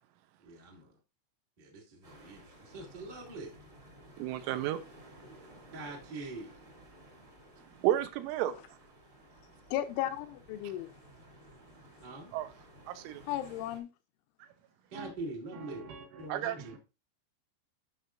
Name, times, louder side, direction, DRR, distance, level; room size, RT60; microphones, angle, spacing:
voice 1, 0.4-0.9 1.6-3.5 5.7-6.6 12.0-12.3 14.9-15.9 16.2-16.7, right 2 dB, 60° right, 0.5 m, -43 dB
sound 1, 2.0-13.8, right 1 dB, 40° right, 1.1 m, -56 dB
voice 2, 4.2-4.8 7.8-8.6 12.3-12.5 12.9-13.2 16.3-16.6, right 13 dB, 90° right, 3.3 m, -31 dB
voice 3, 9.7-10.9 13.3-13.9, left 12 dB, 80° left, 2.8 m, -34 dB
voice 4, 15.5-16.3 16.6-16.8, right 4 dB, 75° right, 2.6 m, -47 dB
12.5 x 5.8 x 2.5 m
omnidirectional pair, 5.7 m